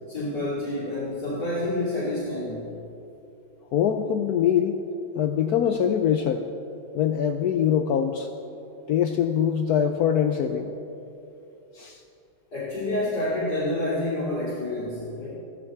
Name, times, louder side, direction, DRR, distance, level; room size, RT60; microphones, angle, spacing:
voice 1, 0.1-2.7 12.5-15.3, left 1 dB, 50° left, -9 dB, 3.6 m, -28 dB
voice 2, 3.7-4.8 5.1-6.5 6.9-8.3 8.9-10.7 11.7-12.0, left 8 dB, 80° left, 7 dB, 0.8 m, -23 dB
15.5 x 13.0 x 4.4 m, 2.9 s
omnidirectional pair, 2.2 m